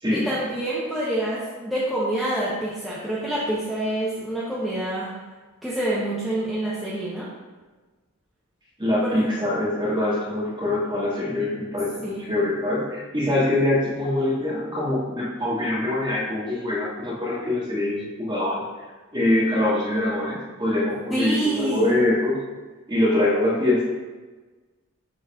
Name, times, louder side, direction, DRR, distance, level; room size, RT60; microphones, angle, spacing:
voice 1, 0.1-5.1 5.6-7.3 9.0-9.3 12.0-12.3 21.1-21.9, right 1 dB, ahead, -9 dB, 0.9 m, -27 dB
voice 2, 8.8-18.6 19.1-22.4 22.9-23.8, left 1 dB, 20° right, -7 dB, 2.0 m, -24 dB
10.5 x 4.0 x 2.5 m, 1.3 s
head